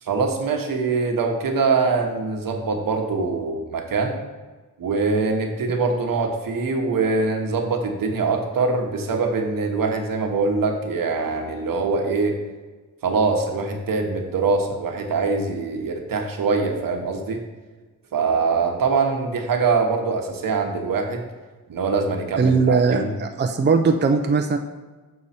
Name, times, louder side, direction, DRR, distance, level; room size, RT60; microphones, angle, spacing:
voice 1, 0.0-4.2 4.8-12.4 13.0-17.4 18.1-21.2 21.7-23.1, right 4 dB, 75° right, 3 dB, 1.1 m, -23 dB
voice 2, 22.4-24.6, right 4 dB, 30° right, 5 dB, 0.5 m, -19 dB
6.7 x 4.8 x 4.2 m, 1.3 s
cardioid pair, 85°, 34 cm